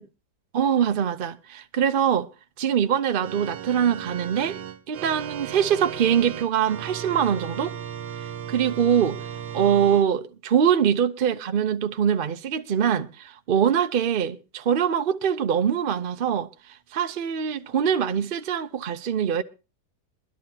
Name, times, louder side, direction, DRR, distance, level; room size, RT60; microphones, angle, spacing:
voice 1, 0.5-2.3 2.6-4.6 4.9-7.7 8.5-9.2 9.5-16.5 16.9-19.4, right 8 dB, 50° right, 0.6 m, -23 dB
Organ, 3.2-10.0, right 9 dB, 75° right, 1.4 m, -36 dB
22.5 x 12.0 x 2.9 m
omnidirectional pair, 1.8 m